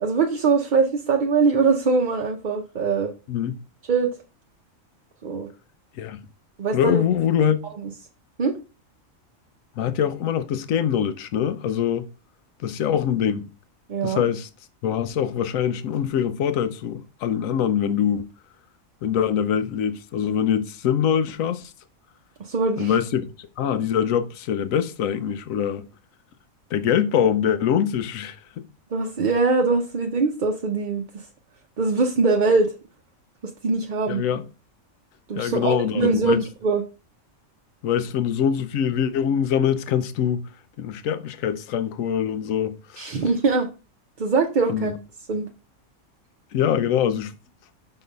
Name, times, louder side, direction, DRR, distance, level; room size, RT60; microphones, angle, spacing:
voice 1, 0.0-3.1 3.9-4.1 5.2-5.5 6.6-7.0 8.4-8.5 13.9-14.3 22.4-23.0 28.9-31.2 31.8-32.7 33.6-34.2 35.3-36.8 43.0-43.7 44.2-44.9 45.3-45.5, right 4 dB, 45° right, 0.6 m, -22 dB
voice 2, 6.7-7.6 9.8-12.1 12.6-13.4 14.0-14.5 14.8-18.3 19.0-21.7 22.8-25.8 26.7-28.6 34.1-34.4 35.4-36.4 37.8-40.4 40.8-43.2 44.7-44.9 46.5-47.3, left 8 dB, 80° left, 1.1 m, -23 dB
5.5 x 3.9 x 5.1 m
omnidirectional pair, 1.4 m